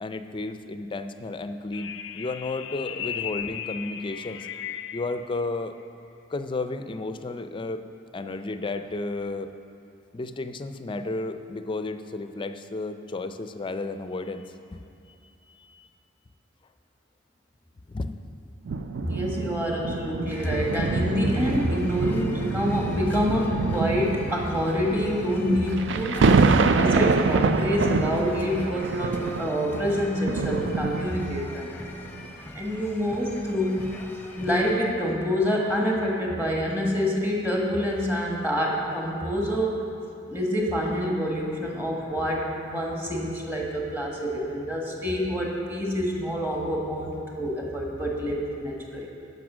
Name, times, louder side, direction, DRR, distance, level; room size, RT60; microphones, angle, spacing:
voice 1, 0.0-4.5 4.9-5.7 6.3-7.8 8.1-9.5 10.1-14.8 15.2-15.9 17.9-18.2, left 2 dB, 25° left, 9 dB, 0.4 m, -33 dB
sound 1, 1.7-5.2, left 9 dB, 85° left, 0.4 m, -36 dB
sound 2, 18.7-31.4 32.1-32.3, right 4 dB, 75° right, 0.4 m, -26 dB
voice 2, 19.1-31.7 32.5-34.0 34.4-39.8 40.3-49.1, equal, 10° right, -2 dB, 1.5 m, -27 dB
sound 3, 20.3-34.8, left 1 dB, 10° left, 0.8 m, -42 dB
12.5 x 5.4 x 6.1 m, 2.6 s
head